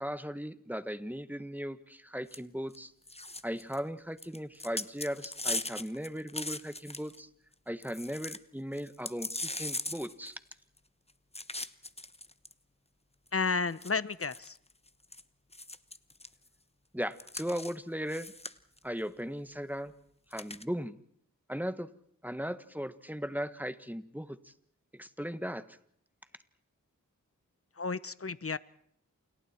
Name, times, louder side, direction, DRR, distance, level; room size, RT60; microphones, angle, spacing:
voice 1, 0.0-2.9 3.4-7.3 7.7-10.4 16.9-18.3 18.8-19.9 20.3-21.0 21.5-21.9 22.2-24.5 24.9-25.8, equal, 5° right, 12 dB, 1.5 m, -37 dB
sound 1, 2.3-2.4 2.7-2.8 3.1-3.8 4.2-7.2 7.5-7.6 7.8-8.4 8.7-10.8 11.3-12.5 13.3-13.4 13.8-15.2 15.5-16.3 17.2-17.7 18.1-18.8 20.3-20.6, left 2 dB, 20° left, 1.0 m, -39 dB
voice 2, 13.3-14.6 27.8-28.6, left 4 dB, 45° left, 17 dB, 0.9 m, -32 dB
29.0 x 28.0 x 4.5 m, 0.66 s
wide cardioid pair, 50°, 32 cm